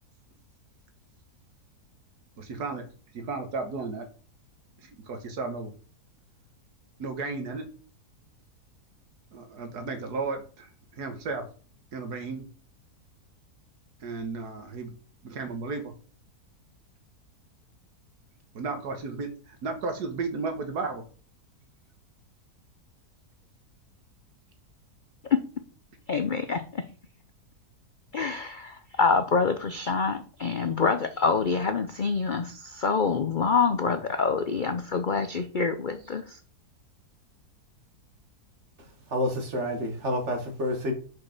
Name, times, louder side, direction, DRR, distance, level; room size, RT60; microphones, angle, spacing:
voice 1, 2.4-2.9 3.1-4.1 4.8-5.7 7.0-7.7 9.3-11.5 11.9-12.4 14.0-14.9 15.2-15.9 18.5-21.0, right 4 dB, 80° right, 6 dB, 1.8 m, -34 dB
voice 2, 26.1-26.8 28.1-36.4, left 5 dB, 65° left, 9 dB, 0.4 m, -26 dB
voice 3, 39.1-40.9, left 1 dB, 45° right, 4 dB, 2.0 m, -28 dB
5.9 x 5.2 x 5.9 m, 0.40 s
omnidirectional pair, 1.7 m